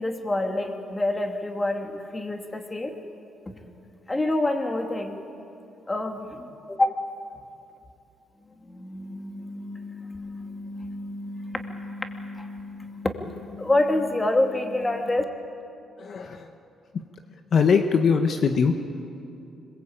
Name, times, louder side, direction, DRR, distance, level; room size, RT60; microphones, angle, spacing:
voice 1, 0.0-2.9 4.1-5.2 5.9-6.9 8.5-15.2, left 2 dB, 20° left, 4 dB, 2.6 m, -28 dB
voice 2, 16.0-16.5 17.5-18.7, left 5 dB, 55° left, 6 dB, 1.4 m, -21 dB
25.5 x 21.5 x 8.8 m, 2.7 s
cardioid pair, 90°, 0 cm